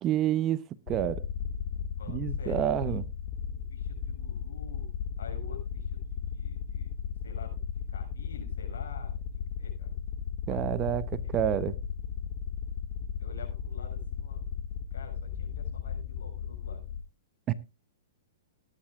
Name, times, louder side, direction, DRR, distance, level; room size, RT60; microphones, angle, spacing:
voice 1, 0.0-0.6 0.9-1.3 2.1-3.0 10.5-11.8 17.5-17.6, right 12 dB, 30° right, 0.7 m, -28 dB
sound 1, 0.9-17.0, left 8 dB, 55° left, 1.4 m, -35 dB
voice 2, 2.0-2.8 3.6-4.9 5.2-7.6 7.9-9.2 9.6-10.0 10.5-10.9 11.2-11.3 13.2-14.6 14.9-16.8, left 6 dB, 80° left, 6.9 m, -49 dB
18.5 x 10.5 x 2.4 m
hypercardioid pair, 135°, 0 cm